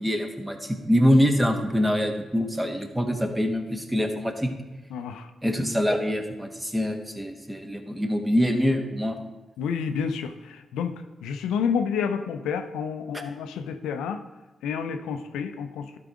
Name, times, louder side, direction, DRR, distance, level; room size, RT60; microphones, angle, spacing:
voice 1, 0.0-4.5 5.4-9.2, equal, 15° right, 5 dB, 1.5 m, -24 dB
voice 2, 4.9-5.3 9.6-10.9 11.2-14.2 14.6-16.0, left 6 dB, 85° left, 8 dB, 0.5 m, -29 dB
12.0 x 4.7 x 4.9 m, 1.1 s
supercardioid pair, 45°, 0 cm